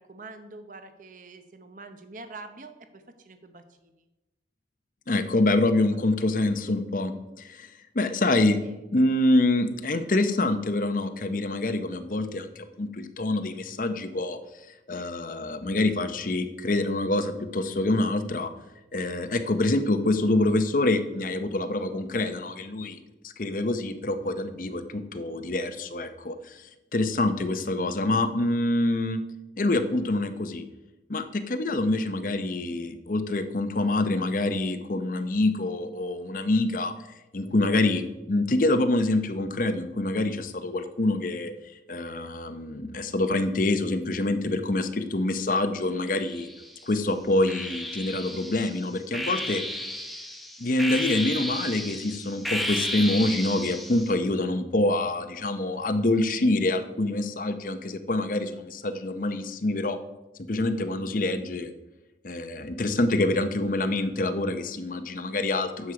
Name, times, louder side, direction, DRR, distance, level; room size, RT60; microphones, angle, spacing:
voice 1, 0.0-3.9 8.5-8.8, right 3 dB, 45° right, 8 dB, 0.8 m, -45 dB
voice 2, 5.1-8.6 8.9-14.4 14.9-18.5 18.9-23.0 23.2-29.2 29.6-30.6 31.1-36.9 37.3-41.5 41.9-46.5 46.8-49.6 50.6-60.0 60.5-61.7 62.2-65.9, left 2 dB, 45° left, 9 dB, 0.7 m, -26 dB
sound 1, 46.1-46.8 47.5-54.1, equal, ahead, 0.7 m, -33 dB
9.7 x 7.2 x 4.8 m, 1.0 s
head